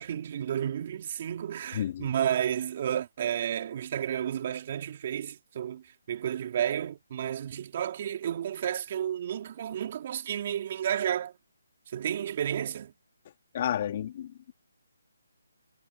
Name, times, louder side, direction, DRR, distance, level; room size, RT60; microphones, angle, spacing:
voice 1, 0.0-11.3 11.9-12.9, right 10 dB, 35° right, 3.4 m, -32 dB
voice 2, 1.7-2.0 13.5-14.5, left 10 dB, 35° left, 2.5 m, -31 dB
hypercardioid pair, 165°, 0 cm